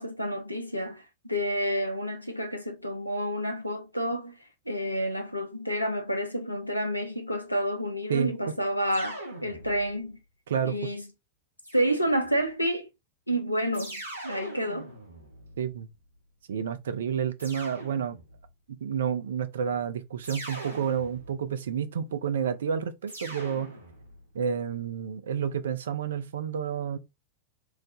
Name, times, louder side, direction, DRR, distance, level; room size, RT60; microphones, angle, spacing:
voice 1, 0.0-4.4 4.7-10.2 10.6-11.0 11.7-12.9 13.3-13.9 14.2-14.9, equal, 85° left, 0.6 m, -29 dB
sound 1, 8.9-10.1 11.6-12.5 13.7-16.1 17.4-18.5 20.2-21.6 23.1-24.3, right 1 dB, 80° right, 1.0 m, -42 dB
voice 2, 10.5-10.9 15.6-15.9 16.5-18.2 18.8-23.7 24.3-27.0, right 7 dB, 65° right, 0.4 m, -30 dB
3.2 x 2.1 x 3.6 m
figure-of-eight pair, 90°, 0 cm